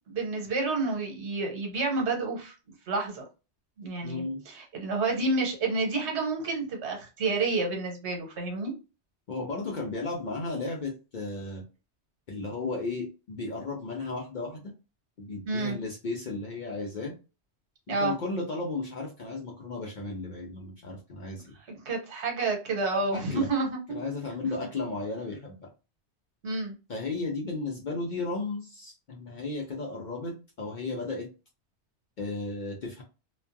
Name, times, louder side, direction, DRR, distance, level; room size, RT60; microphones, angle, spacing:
voice 1, 0.1-2.5 2.9-3.2 3.8-8.7 15.5-15.8 17.9-18.1 21.8-24.0 26.4-26.7, right 3 dB, 75° right, 0 dB, 1.1 m, -29 dB
voice 2, 4.0-4.4 9.3-11.6 12.3-14.7 15.2-17.1 17.9-21.5 23.1-23.5 23.9-25.7 26.9-31.3 32.2-33.0, left 3 dB, 55° left, 0 dB, 0.5 m, -34 dB
2.3 x 2.2 x 2.5 m, 0.31 s
omnidirectional pair, 1.2 m